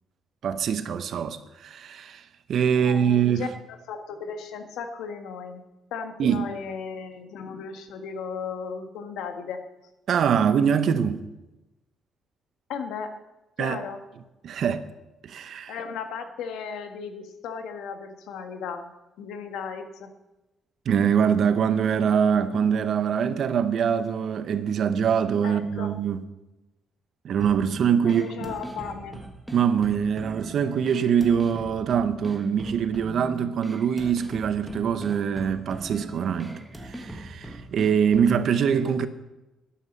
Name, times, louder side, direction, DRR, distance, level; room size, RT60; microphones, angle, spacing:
voice 1, 0.4-2.2 2.5-3.5 6.2-6.5 10.1-11.3 13.6-13.8 14.4-14.9 15.2-15.8 20.9-26.2 27.2-28.3 29.5-39.1, right 7 dB, 45° right, 0.8 m, -24 dB
voice 2, 2.8-5.6 5.9-9.6 12.7-13.1 13.6-14.0 15.7-18.9 19.2-20.1 25.4-25.9 28.0-29.2, left 6 dB, 90° left, 1.6 m, -35 dB
sound 1, 27.4-38.4, right 1 dB, ahead, 1.4 m, -40 dB
13.0 x 11.5 x 5.4 m
cardioid pair, 180°, 0 cm